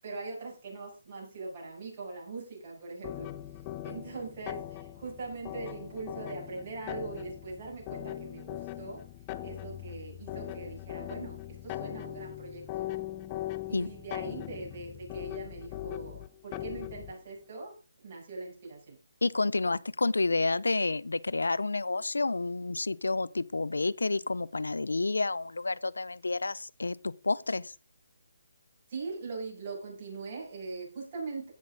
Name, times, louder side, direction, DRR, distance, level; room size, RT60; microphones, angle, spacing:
voice 1, 0.0-3.3 3.8-9.0 9.4-13.1 13.7-17.7 18.0-19.0 28.9-31.5, right 3 dB, 35° right, 7.0 m, -41 dB
sound 1, 3.0-17.2, left 14 dB, 20° left, 0.6 m, -40 dB
voice 2, 19.2-27.7, left 3 dB, 90° left, 0.5 m, -30 dB
16.0 x 6.2 x 3.8 m
hypercardioid pair, 155°, 0 cm